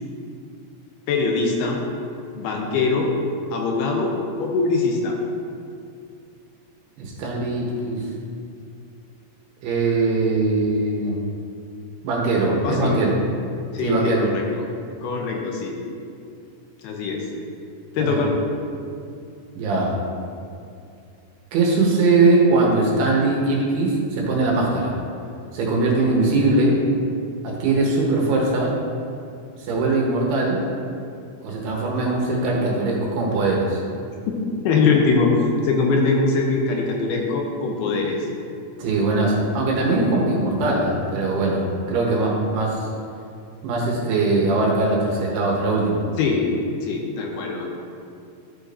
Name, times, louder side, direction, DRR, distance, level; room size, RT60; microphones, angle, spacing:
voice 1, 1.1-1.9 2.4-3.1 3.5-4.1 4.4-5.2 12.6-13.0 13.7-14.6 15.0-15.8 16.8-17.2 17.9-18.4 34.6-38.3 46.2-46.5 46.8-47.7, left 4 dB, 85° left, 0 dB, 2.7 m, -22 dB
voice 2, 7.0-8.0 9.6-11.2 12.0-13.1 13.8-14.3 18.0-18.2 19.6-19.9 21.5-24.9 25.5-26.8 27.4-28.7 29.6-30.6 31.4-33.8 38.8-42.9 43.6-46.0, right 2 dB, 80° right, -3 dB, 3.2 m, -21 dB
12.5 x 5.1 x 2.7 m, 2.4 s
omnidirectional pair, 4.7 m